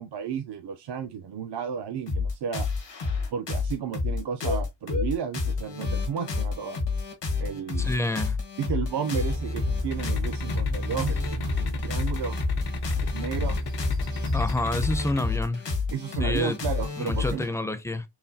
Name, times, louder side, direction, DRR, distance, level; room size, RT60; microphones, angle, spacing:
voice 1, 0.0-2.7 3.3-6.8 7.4-8.1 8.6-12.4 13.0-13.6 15.9-17.6, right 7 dB, 70° right, 0.6 m, -33 dB
sound 1, 2.1-17.5, left 4 dB, 80° left, 1.4 m, -29 dB
voice 2, 7.8-8.4 14.3-15.6 16.2-16.6 17.0-18.0, left 2 dB, 5° left, 0.4 m, -28 dB
sound 2, 9.1-15.1, equal, 85° right, 1.4 m, -33 dB
sound 3, 9.9-15.2, left 7 dB, 60° left, 0.7 m, -37 dB
5.7 x 2.2 x 2.7 m
wide cardioid pair, 125°, 43 cm